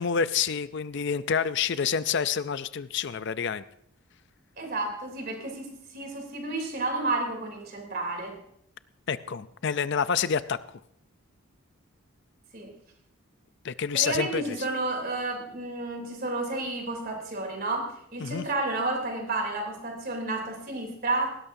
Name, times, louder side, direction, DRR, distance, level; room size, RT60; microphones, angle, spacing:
voice 1, 0.0-3.6 9.1-10.6 13.6-14.6 18.2-18.5, left 6 dB, 55° left, 14 dB, 0.5 m, -28 dB
voice 2, 4.6-8.4 12.5-12.7 13.9-21.4, right 2 dB, 40° right, 3 dB, 3.2 m, -31 dB
19.0 x 17.0 x 2.7 m, 0.70 s
head